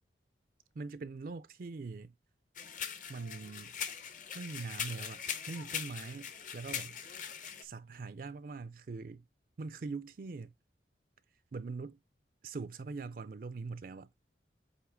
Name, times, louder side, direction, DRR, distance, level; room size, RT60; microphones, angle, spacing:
voice 1, 0.7-2.1 3.1-3.7 4.3-7.0 7.6-9.2 9.6-10.5 11.5-12.0 12.4-14.1, right 4 dB, 50° right, 0.4 m, -42 dB
sound 1, 2.6-7.6, left 8 dB, 45° left, 0.8 m, -41 dB
8.0 x 2.9 x 4.9 m
head